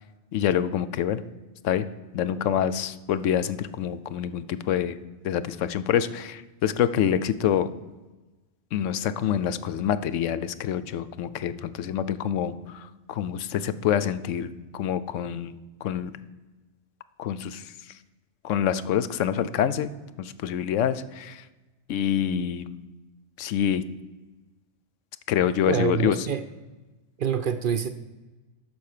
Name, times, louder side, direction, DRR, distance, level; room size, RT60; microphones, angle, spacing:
voice 1, 0.3-1.2 1.6-1.9 2.1-5.0 5.2-7.7 8.7-15.5 15.8-16.1 17.2-17.7 18.4-19.9 20.2-21.4 21.9-22.7 23.4-23.8 25.3-26.2, left 9 dB, 80° left, 14 dB, 0.9 m, -26 dB
voice 2, 25.7-26.4 27.2-27.9, right 8 dB, 55° right, 8 dB, 0.6 m, -26 dB
12.5 x 4.5 x 6.5 m, 1.2 s
omnidirectional pair, 1.3 m